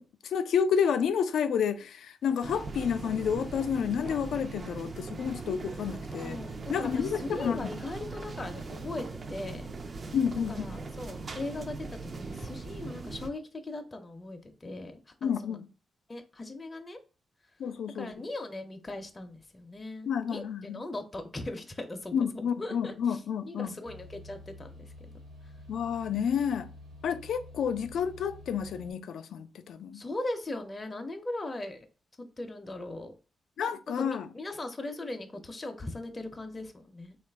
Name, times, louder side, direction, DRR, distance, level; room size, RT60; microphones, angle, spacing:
voice 1, 0.0-6.4 6.7-7.7 10.1-10.7 15.2-15.6 17.6-18.1 20.1-20.8 22.1-23.7 25.7-26.7 27.0-30.0 33.6-34.3, left 7 dB, 85° left, 0.3 m, -30 dB
sound 1, 2.4-13.3, right 3 dB, 45° right, 0.4 m, -40 dB
voice 2, 6.2-6.5 6.8-9.7 10.5-15.6 16.1-17.0 17.9-22.3 22.6-23.2 23.4-24.9 29.9-31.9 32.4-33.1 33.9-37.2, left 2 dB, 25° left, 0.5 m, -39 dB
sound 2, 23.8-28.9, left 1 dB, 80° right, 1.1 m, -49 dB
3.6 x 2.3 x 3.3 m
cardioid pair, 95°, 0 cm